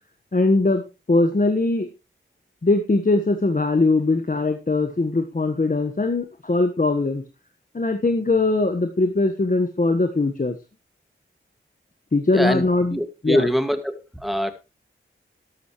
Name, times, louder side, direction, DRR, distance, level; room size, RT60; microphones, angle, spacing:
voice 1, 0.3-0.8 1.1-1.9 2.6-7.2 7.7-10.6 12.1-13.0 13.2-13.5, left 2 dB, 40° left, 6 dB, 1.5 m, -21 dB
voice 2, 12.3-12.6 12.9-14.5, equal, ahead, 8 dB, 2.1 m, -23 dB
13.0 x 12.0 x 3.2 m, 0.29 s
cardioid pair, 45°, 21 cm